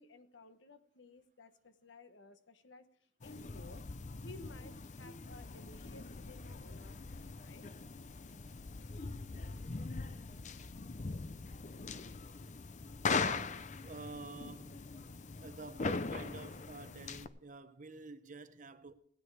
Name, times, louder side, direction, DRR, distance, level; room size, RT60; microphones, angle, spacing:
voice 1, 0.0-3.8 4.2-7.7 8.9-9.1, left 2 dB, 75° left, 1.1 m, -56 dB
sound 1, 3.2-17.3, left 4 dB, 40° left, 0.6 m, -41 dB
voice 2, 13.0-14.8 15.4-18.9, right 3 dB, 45° right, 0.9 m, -49 dB
16.5 x 9.8 x 4.8 m
head